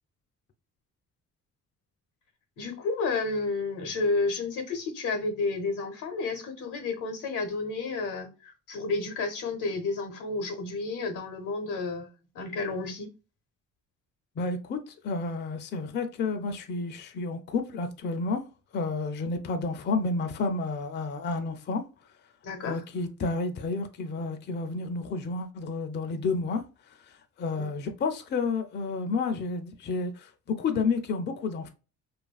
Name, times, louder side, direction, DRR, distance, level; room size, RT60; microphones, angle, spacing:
voice 1, 2.6-12.1 12.3-13.1 22.4-22.8 27.6-27.7, left 3 dB, 85° left, 0.8 m, -31 dB
voice 2, 14.4-21.9 22.6-26.7 27.1-31.7, left 4 dB, 35° left, 0.4 m, -31 dB
2.7 x 2.5 x 2.3 m
cardioid pair, 90°, 30 cm